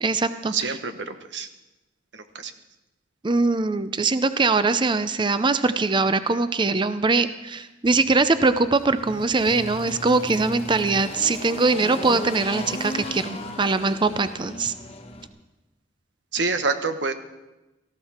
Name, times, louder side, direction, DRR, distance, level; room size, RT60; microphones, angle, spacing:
voice 1, 0.0-0.8 3.2-14.7, right 3 dB, 25° right, 12 dB, 0.5 m, -22 dB
voice 2, 0.5-1.5 2.1-2.5 16.3-17.1, right 4 dB, 75° right, 8 dB, 1.2 m, -27 dB
Engine, 7.8-15.3, left 1 dB, 35° left, 1.3 m, -36 dB
18.5 x 14.5 x 4.3 m, 1.0 s
head